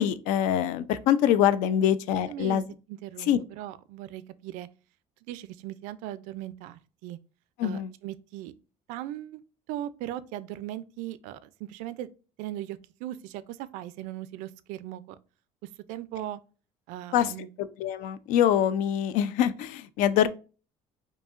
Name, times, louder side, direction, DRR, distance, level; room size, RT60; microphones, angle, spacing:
voice 1, 0.0-2.6 3.3-3.4 7.6-7.9 17.1-17.3 17.6-20.3, left 10 dB, 75° left, 0.4 m, -24 dB
voice 2, 2.2-2.6 2.9-4.7 5.3-7.2 7.6-8.5 8.9-9.4 9.7-12.1 12.4-15.2 15.9-16.4 16.9-17.5, right 13 dB, 85° right, 0.4 m, -38 dB
5.2 x 2.7 x 2.4 m
cardioid pair, 180°, 13 cm